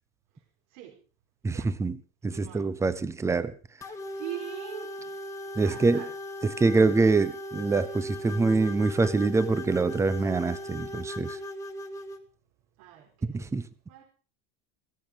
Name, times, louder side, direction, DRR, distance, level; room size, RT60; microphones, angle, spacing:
voice 1, 1.4-3.5 5.6-6.1 6.4-11.4 13.3-13.7, right 3 dB, 10° right, 0.8 m, -25 dB
voice 2, 2.3-2.7 4.2-5.1 5.6-6.1 12.8-13.5 13.9-14.0, right 12 dB, 60° right, 4.8 m, -42 dB
sound 1, 3.8-12.2, left 1 dB, 10° left, 1.6 m, -38 dB
16.0 x 15.0 x 5.1 m
cardioid pair, 165°, 31 cm